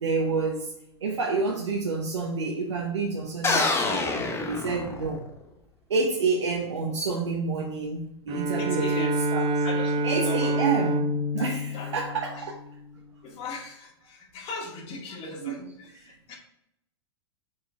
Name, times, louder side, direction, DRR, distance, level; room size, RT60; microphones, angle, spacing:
voice 1, 0.0-0.7 1.0-5.3 5.9-9.5 10.0-11.0 11.3-12.6 15.4-15.7 16.0-16.1, right 4 dB, 80° right, -1 dB, 1.0 m, -28 dB
sound 1, 3.4-5.4, left 3 dB, 15° left, 1.0 m, -26 dB
Bowed string instrument, 8.3-12.9, right 1 dB, 40° right, 0.8 m, -27 dB
voice 2, 8.5-9.2 9.6-10.6 11.3-12.5 13.2-16.4, left 3 dB, 40° left, -1 dB, 2.2 m, -39 dB
5.0 x 4.9 x 4.4 m, 0.80 s
hypercardioid pair, 110°, 15 cm